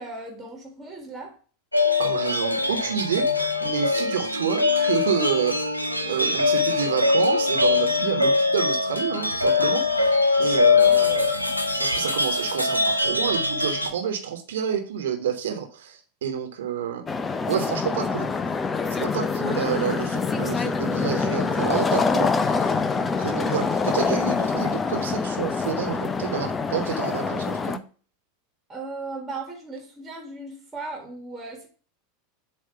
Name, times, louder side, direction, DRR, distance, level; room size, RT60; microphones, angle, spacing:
voice 1, 0.0-1.3 10.9-11.5 28.7-31.7, right 3 dB, 10° right, 2 dB, 1.7 m, -37 dB
sound 1, 1.7-13.9, left 3 dB, 85° left, 0.8 m, -22 dB
voice 2, 2.0-5.6 6.1-11.3 11.8-17.0 17.5-18.3 19.0-22.7 23.0-27.8, right 8 dB, 65° right, 5 dB, 1.3 m, -29 dB
sound 2, 17.1-27.8, left 4 dB, 20° left, 0.5 m, -25 dB
7.9 x 3.0 x 5.6 m, 0.39 s
figure-of-eight pair, 85°, 0 cm